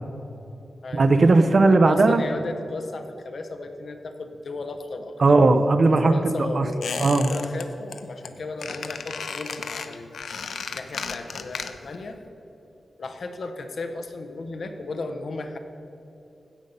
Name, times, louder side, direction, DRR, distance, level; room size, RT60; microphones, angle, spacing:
voice 1, 0.9-2.2 5.2-6.2 6.5-6.7 7.0-7.3, right 3 dB, 40° right, 9 dB, 0.5 m, -17 dB
voice 2, 1.8-5.4 6.0-10.2 10.7-12.2 13.0-15.6, left 3 dB, 55° left, 7 dB, 0.8 m, -35 dB
Squeak, 6.8-7.6 7.9-8.3 8.6-12.0 12.3-12.4, left 5 dB, 90° left, 0.5 m, -34 dB
16.0 x 5.4 x 5.4 m, 2.9 s
wide cardioid pair, 180°, 0 cm